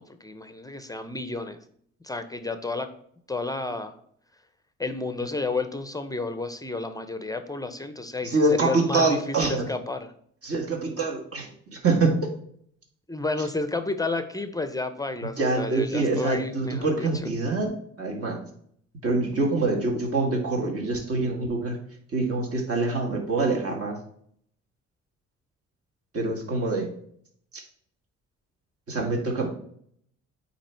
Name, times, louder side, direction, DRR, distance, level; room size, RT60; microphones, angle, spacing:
voice 1, 0.0-1.6 2.0-2.9 3.3-3.9 4.8-10.1 13.1-17.1, left 3 dB, 10° left, 9 dB, 0.5 m, -31 dB
voice 2, 8.2-9.7 10.4-12.3 15.4-17.7 18.0-18.4 19.0-21.8 22.1-24.0 26.1-26.9 27.5-27.6 28.9-29.5, right 3 dB, 50° right, 1 dB, 1.8 m, -25 dB
8.7 x 2.9 x 4.4 m, 0.65 s
cardioid pair, 90°, 30 cm